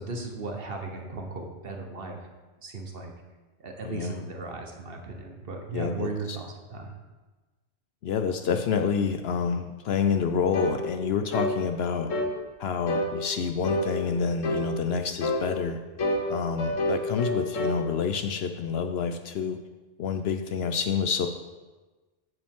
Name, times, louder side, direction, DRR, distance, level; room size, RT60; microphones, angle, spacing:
voice 1, 0.0-2.3 2.6-3.1 3.6-6.9, right 3 dB, 50° right, 3 dB, 1.1 m, -36 dB
voice 2, 3.8-4.2 5.7-6.4 8.0-12.1 12.6-15.8 16.3-19.6 20.0-21.3, left 6 dB, 65° left, 7 dB, 0.7 m, -28 dB
sound 1, 10.5-10.8 11.3-11.6 12.1-12.3 12.9-13.1 13.6-13.9 14.4-14.7 15.2-15.5 16.0-17.8, left 1 dB, 90° left, 1.4 m, -27 dB
14.0 x 5.1 x 3.6 m, 1.2 s
omnidirectional pair, 1.3 m